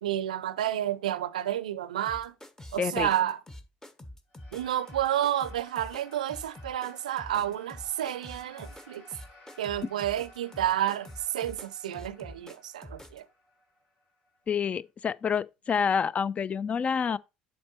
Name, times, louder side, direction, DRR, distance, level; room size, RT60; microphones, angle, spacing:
voice 1, 0.0-2.3 2.7-3.4 4.5-9.1 9.6-13.3, right 11 dB, 80° right, 0.4 m, -30 dB
sound 1, 2.1-13.2, left 1 dB, 10° left, 1.0 m, -46 dB
voice 2, 2.8-3.1 14.5-17.2, left 6 dB, 35° left, 0.3 m, -28 dB
sound 2, 4.3-14.8, left 1 dB, 55° left, 4.2 m, -56 dB
7.6 x 5.3 x 4.0 m
figure-of-eight pair, 60°, 4 cm